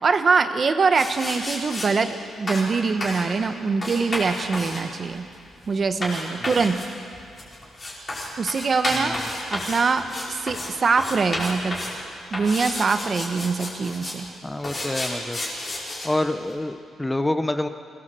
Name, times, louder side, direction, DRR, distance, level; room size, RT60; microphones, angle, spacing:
voice 1, 0.0-5.3 5.7-6.8 8.4-9.2 9.5-11.8 12.3-14.3, right 4 dB, 35° right, 9 dB, 1.0 m, -23 dB
sound 1, 0.9-1.9 2.5-2.7 3.0-3.3 3.8-10.7 11.0-12.0 12.3-14.2 14.6-16.1, left 1 dB, 25° left, 4.9 m, -31 dB
voice 2, 14.4-15.4 16.0-17.7, left 1 dB, 10° left, 9 dB, 0.8 m, -27 dB
23.0 x 18.0 x 7.6 m, 2.4 s
cardioid pair, 150°, 0 cm